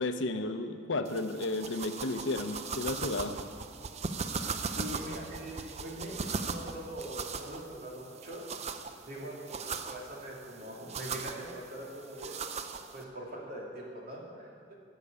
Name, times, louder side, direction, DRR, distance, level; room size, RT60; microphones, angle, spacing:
voice 1, 0.0-3.3, left 2 dB, 75° left, 8 dB, 0.7 m, -33 dB
sound 1, 1.1-13.0, right 5 dB, 35° right, 0.5 m, -39 dB
voice 2, 4.6-8.5 9.1-12.3 12.9-14.7, right 1 dB, 50° right, -3 dB, 2.6 m, -42 dB
11.5 x 6.7 x 8.5 m, 2.3 s
head